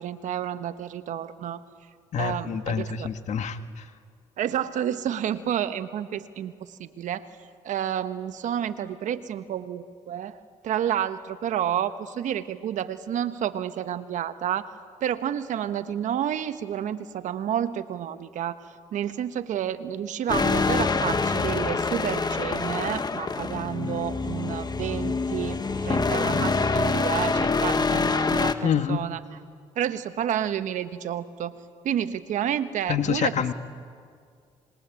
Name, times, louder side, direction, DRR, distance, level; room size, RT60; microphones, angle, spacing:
voice 1, 0.0-1.6 2.2-3.1 4.4-7.3 7.6-14.7 15.0-29.4 29.7-31.5 31.8-33.5, right 10 dB, 70° right, 11 dB, 1.3 m, -30 dB
voice 2, 2.1-3.8 28.6-29.0 32.9-33.5, left 7 dB, 65° left, 9 dB, 1.7 m, -27 dB
sound 1, 20.3-28.5, left 4 dB, 30° left, 1.7 m, -25 dB
26.5 x 22.0 x 9.1 m, 2.1 s
supercardioid pair, 65°, 13 cm